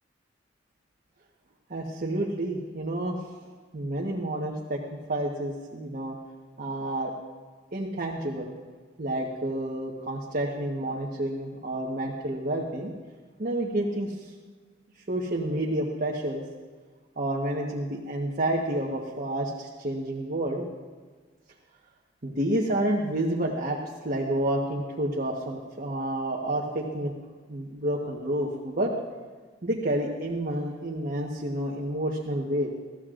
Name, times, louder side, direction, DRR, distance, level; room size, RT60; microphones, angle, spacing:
voice 1, 1.7-3.2 3.7-4.8 5.1-6.2 6.6-7.1 7.7-8.5 9.0-12.9 13.4-14.3 15.1-16.4 17.2-20.7 22.2-27.1 27.5-28.9 29.6-32.7, right 1 dB, 50° right, -3 dB, 1.3 m, -29 dB
21.0 x 14.5 x 2.5 m, 1.5 s
head